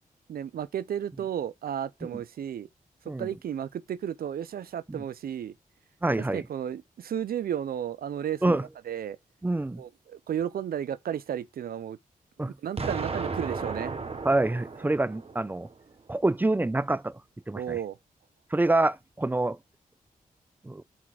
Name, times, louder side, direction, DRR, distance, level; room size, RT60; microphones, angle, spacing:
voice 1, 0.3-2.7 3.2-5.5 6.2-9.2 9.8-12.0 12.5-14.0 17.5-18.0, right 9 dB, 80° right, 0.5 m, -33 dB
voice 2, 6.0-6.4 8.4-8.6 9.4-9.8 12.4-12.5 14.2-15.7 16.1-17.2 17.5-17.8 18.5-19.6 20.6-20.8, right 2 dB, 10° right, 0.4 m, -26 dB
Explosion, 12.8-15.7, right 4 dB, 40° right, 0.9 m, -34 dB
6.1 x 4.2 x 6.0 m
cardioid pair, 60°, 15 cm